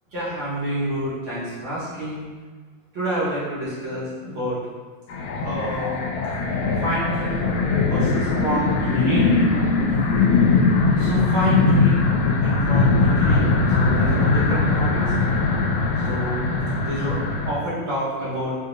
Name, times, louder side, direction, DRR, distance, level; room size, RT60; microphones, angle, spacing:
voice 1, 0.1-2.3 2.9-4.6 5.4-6.0 6.8-7.5 7.8-9.4 11.0-12.1 12.4-15.0 16.1-16.4 16.8-18.6, equal, 65° right, -12 dB, 1.9 m, -28 dB
sound 1, 5.1-17.5, left 3 dB, 85° left, 1.5 m, -20 dB
4.9 x 2.7 x 2.5 m, 1.5 s
omnidirectional pair, 2.4 m